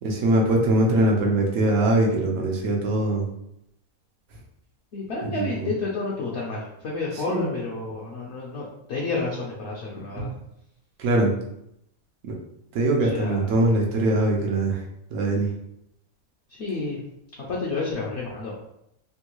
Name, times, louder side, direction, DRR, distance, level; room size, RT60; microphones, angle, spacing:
voice 1, 0.0-3.3 5.2-5.7 7.3-7.5 10.2-10.3 11.0-11.3 12.2-12.4 12.7-14.8 15.1-15.5, right 1 dB, 90° right, 0 dB, 1.2 m, -22 dB
voice 2, 4.9-10.3 13.0-13.5 16.6-17.0 17.5-18.7, left 3 dB, 60° left, -4 dB, 0.8 m, -30 dB
3.5 x 2.2 x 2.9 m, 0.78 s
omnidirectional pair, 1.5 m